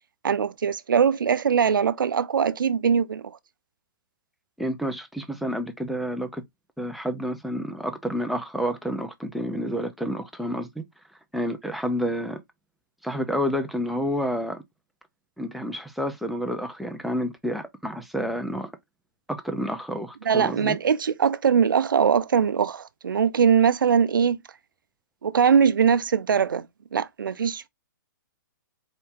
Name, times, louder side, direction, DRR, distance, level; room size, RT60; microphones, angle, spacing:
voice 1, 0.2-3.3 20.3-24.4 25.2-26.7 26.9-27.7, right 7 dB, 85° right, 0.5 m, -21 dB
voice 2, 4.6-6.4 6.8-10.8 11.3-12.4 13.0-14.6 15.4-18.7 19.3-20.8, equal, ahead, 0.5 m, -29 dB
4.4 x 2.7 x 3.5 m
hypercardioid pair, 140°, 11 cm